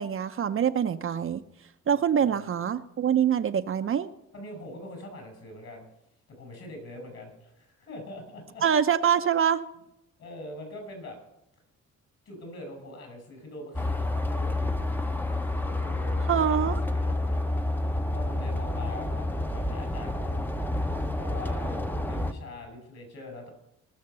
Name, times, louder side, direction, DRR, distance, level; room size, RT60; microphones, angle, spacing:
voice 1, 0.0-1.4 1.9-4.1 8.6-9.6 16.3-16.8, right 8 dB, 45° right, 9 dB, 0.7 m, -25 dB
voice 2, 4.3-5.9 6.3-8.6 10.2-11.2 12.3-15.0 15.5-17.5 18.1-20.6 21.1-23.5, left 1 dB, 55° left, 4 dB, 5.8 m, -43 dB
sound 1, 13.7-22.3, left 2 dB, 5° left, 0.8 m, -29 dB
19.5 x 6.5 x 6.8 m, 0.82 s
cardioid pair, 90°, 30 cm